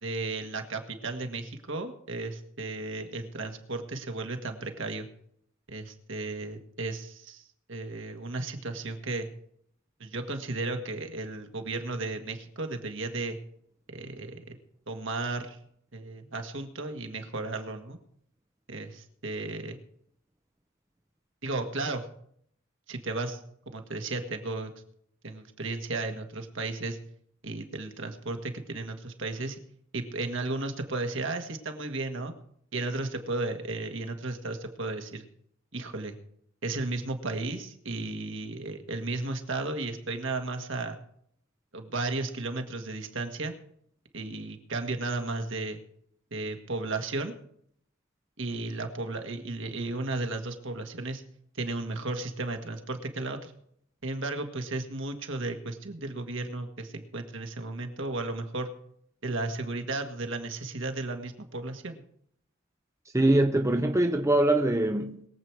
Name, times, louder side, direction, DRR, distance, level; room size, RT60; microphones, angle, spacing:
voice 1, 0.0-5.1 5.7-7.4 7.7-9.3 10.0-13.4 13.9-14.6 14.9-15.6 15.9-18.0 18.7-19.8 21.4-22.0 22.9-23.4 23.7-24.7 25.2-27.0 27.4-29.6 29.9-32.3 32.7-35.2 35.7-36.1 36.6-41.0 41.7-43.5 44.1-45.8 46.3-47.3 48.4-51.2 51.5-53.5 54.0-58.7 59.2-62.0, right 2 dB, 60° right, 1.7 m, -34 dB
voice 2, 63.1-65.3, right 1 dB, 15° right, 0.7 m, -23 dB
22.0 x 8.0 x 4.7 m
head